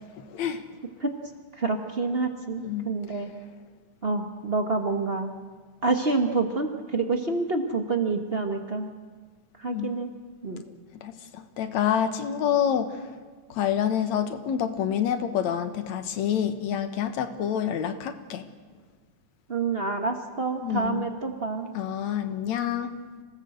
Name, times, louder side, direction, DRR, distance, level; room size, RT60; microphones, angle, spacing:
voice 1, 0.3-0.6 2.6-2.9 9.7-9.9 11.0-13.1 13.5-18.5 20.6-21.1 21.7-22.9, left 9 dB, 70° left, 9 dB, 2.5 m, -27 dB
voice 2, 1.6-3.3 4.0-5.3 5.8-8.9 9.6-10.1 10.4-10.6 19.5-21.7, right 3 dB, 45° right, 5 dB, 0.7 m, -27 dB
26.5 x 18.5 x 8.0 m, 1.5 s
omnidirectional pair, 3.4 m